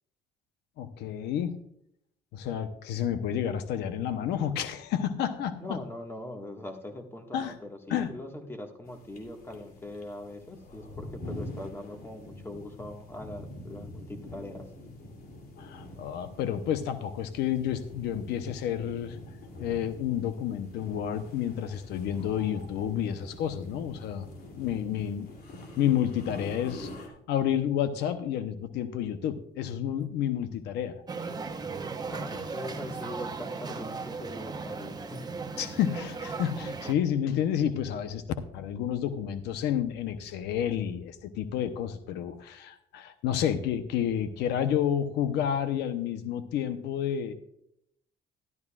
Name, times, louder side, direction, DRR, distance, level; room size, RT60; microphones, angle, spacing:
voice 1, 0.8-1.6 2.3-5.8 7.3-7.6 7.9-8.1 15.6-19.2 19.6-24.3 24.6-25.3 25.8-26.9 27.3-31.0 35.6-38.2 38.5-47.3, left 9 dB, 85° left, 10 dB, 0.9 m, -30 dB
voice 2, 5.6-14.6 32.1-35.2, left 1 dB, 15° left, 4 dB, 1.7 m, -41 dB
sound 1, 8.8-27.1, left 1 dB, 65° left, 2.7 m, -45 dB
sound 2, 31.1-36.9, right 4 dB, 25° right, 1.0 m, -37 dB
12.5 x 12.0 x 2.4 m, 0.72 s
cardioid pair, 110°, 17 cm